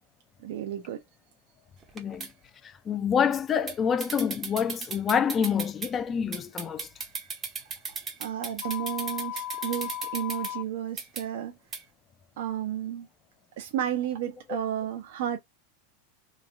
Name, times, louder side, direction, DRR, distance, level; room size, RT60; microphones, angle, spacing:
voice 1, 0.4-1.0 8.2-11.6 12.4-13.1 13.6-15.4, right 10 dB, 65° right, 0.6 m, -32 dB
sound 1, 1.8-2.3 3.7-3.8 4.0-5.9 6.3-10.5 11.0-11.2 11.7-11.8, right 5 dB, 20° right, 0.7 m, -36 dB
voice 2, 1.9-2.3 2.6-6.9, left 7 dB, 20° left, 0.4 m, -27 dB
sound 2, 8.6-10.6, left 13 dB, 85° left, 0.5 m, -36 dB
3.1 x 2.3 x 2.4 m
supercardioid pair, 150°, 0 cm